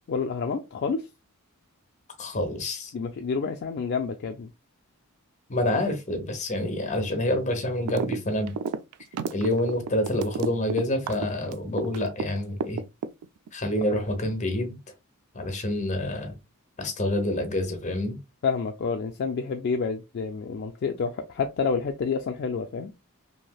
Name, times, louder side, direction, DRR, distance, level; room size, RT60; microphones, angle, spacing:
voice 1, 0.1-1.0 2.9-4.5 18.4-22.9, left 5 dB, 50° left, 0.3 m, -29 dB
voice 2, 2.2-2.9 5.5-8.5 9.3-12.8 13.5-14.8 15.3-16.3 16.8-18.2, left 1 dB, 30° left, 0.8 m, -27 dB
sound 1, 7.9-8.2 8.4-12.3 12.6-13.5, right 6 dB, 85° right, 0.3 m, -31 dB
3.2 x 2.7 x 2.3 m
head